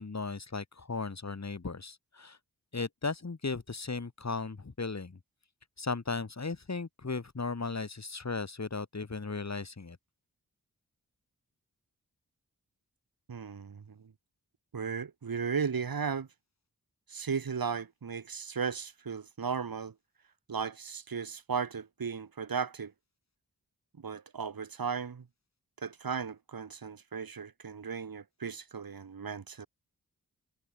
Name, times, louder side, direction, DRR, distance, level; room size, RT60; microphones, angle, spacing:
voice 1, 0.0-2.4 2.7-5.2 5.8-10.0, left 4 dB, 50° left, 4.3 m, -36 dB
voice 2, 13.3-14.1 14.7-16.3 17.1-19.9 20.5-22.9 24.0-25.3 25.8-29.7, right 6 dB, 75° right, 4.5 m, -36 dB
cardioid pair, 45°, 36 cm